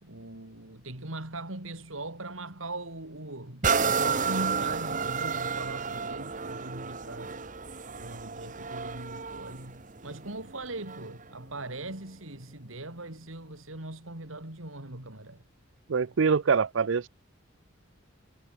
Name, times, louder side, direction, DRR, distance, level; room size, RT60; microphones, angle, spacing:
voice 1, 0.0-7.4 7.9-15.4, right 2 dB, 85° right, 4.2 m, -40 dB
sound 1, 3.6-11.2 11.8-11.9, right 5 dB, 40° right, 1.2 m, -31 dB
voice 2, 15.9-17.1, right 5 dB, 70° right, 0.5 m, -24 dB
head